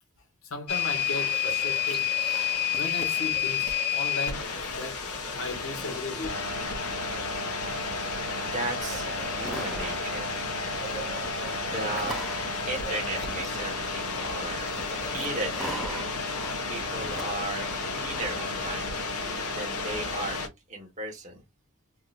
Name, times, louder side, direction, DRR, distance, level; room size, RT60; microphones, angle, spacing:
voice 1, 0.4-2.1 2.8-6.4, left 2 dB, 65° left, 1.3 m, -36 dB
sound 1, 0.7-20.5, left 5 dB, 80° left, 1.3 m, -31 dB
sound 2, 1.1-4.6 5.0-18.7, right 1 dB, ahead, 0.6 m, -43 dB
voice 2, 8.4-10.3 11.6-12.2 12.6-14.7 15.0-16.1 16.7-19.0 19.5-20.4 20.7-21.4, right 2 dB, 35° right, 1.3 m, -36 dB
3.7 x 2.6 x 2.5 m
head